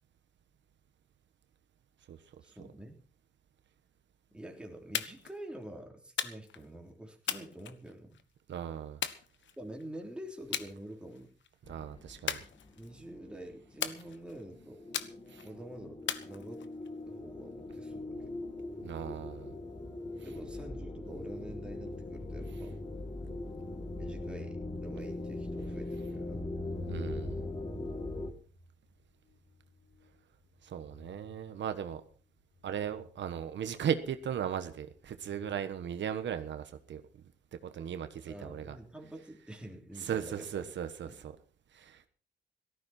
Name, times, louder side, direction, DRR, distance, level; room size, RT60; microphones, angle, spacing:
voice 1, 2.4-3.0 4.3-8.2 9.6-11.3 12.8-14.8 15.4-16.7 17.0-18.4 20.2-22.8 24.0-26.5 28.1-28.4 38.3-40.7 41.0-41.2, right 1 dB, 5° right, 1 dB, 3.4 m, -47 dB
sound 1, 4.9-5.4 6.2-6.6 7.3-8.2 9.0-9.8 10.5-10.7 11.1-11.5 12.3-13.0 13.8-14.4 14.9-15.5 16.1-16.9, left 9 dB, 80° left, 1.3 m, -37 dB
voice 2, 8.5-9.0 11.7-12.4 15.3-15.5 18.8-19.5 26.9-27.4 30.6-32.0 32.6-37.0 37.7-38.8 40.0-41.3 41.7-42.1, right 8 dB, 75° right, 9 dB, 1.3 m, -37 dB
sound 2, 11.6-28.3, left 2 dB, 25° left, 2.0 m, -41 dB
sound 3, 28.7-37.1, left 4 dB, 55° left, 6.4 m, -64 dB
17.0 x 14.0 x 4.4 m, 0.38 s
wide cardioid pair, 140°, 19 cm